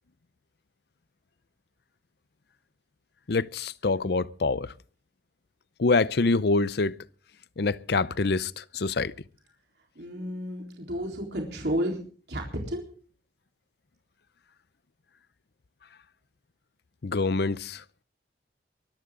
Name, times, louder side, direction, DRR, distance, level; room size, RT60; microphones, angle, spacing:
voice 1, 3.3-4.7 5.8-7.0 7.6-9.1 17.0-17.8, left 3 dB, 65° left, 0.6 m, -25 dB
voice 2, 10.0-12.0 12.3-12.8, equal, 65° right, 4.0 m, -31 dB
23.5 x 13.5 x 3.8 m
head